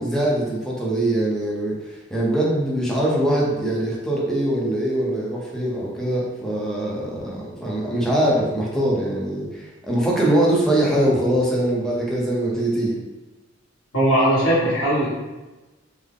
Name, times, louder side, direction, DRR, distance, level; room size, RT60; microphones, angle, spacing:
voice 1, 0.0-13.0, right 1 dB, 5° left, -5 dB, 0.6 m, -22 dB
voice 2, 13.9-15.1, right 1 dB, 80° left, -11 dB, 1.2 m, -19 dB
3.7 x 2.1 x 3.5 m, 1.1 s
head